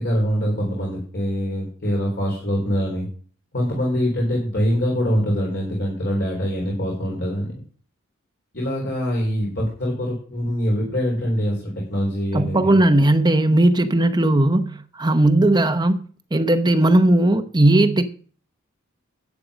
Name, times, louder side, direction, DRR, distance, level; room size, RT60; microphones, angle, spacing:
voice 1, 0.0-3.1 3.5-7.5 8.5-12.8, equal, 55° left, 4.2 m, -24 dB
voice 2, 12.3-16.0 16.3-18.0, right 1 dB, 20° right, 0.9 m, -17 dB
12.0 x 8.7 x 5.1 m
head